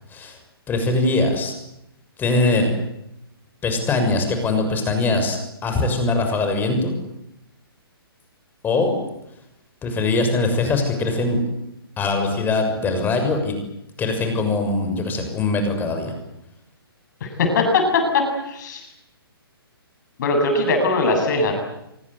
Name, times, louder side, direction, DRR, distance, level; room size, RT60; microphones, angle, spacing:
voice 1, 0.7-1.5 2.2-2.7 3.6-6.9 8.6-8.9 9.8-11.4 12.0-13.6 14.0-16.1, left 3 dB, 15° left, 5 dB, 6.7 m, -22 dB
voice 2, 17.2-18.9 20.2-21.5, left 3 dB, 50° left, 4 dB, 7.8 m, -20 dB
25.0 x 24.0 x 8.3 m, 0.85 s
figure-of-eight pair, 130°, 13 cm